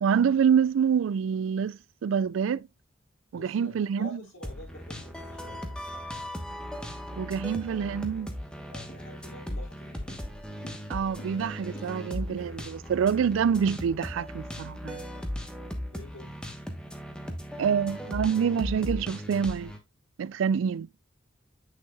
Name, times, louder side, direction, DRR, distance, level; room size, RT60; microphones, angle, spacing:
voice 1, 0.0-2.7 3.3-4.2 7.2-8.3 10.9-15.0 17.6-19.7 20.2-20.9, right 7 dB, 85° right, 0.3 m, -26 dB
voice 2, 3.3-6.0 8.7-10.1 15.9-16.4, left 1 dB, 85° left, 3.6 m, -47 dB
sound 1, 4.4-19.8, equal, 5° left, 1.1 m, -38 dB
Walk footsteps, 8.9-9.2 9.5-14.1, equal, 40° left, 1.4 m, -51 dB
8.4 x 6.6 x 2.3 m
head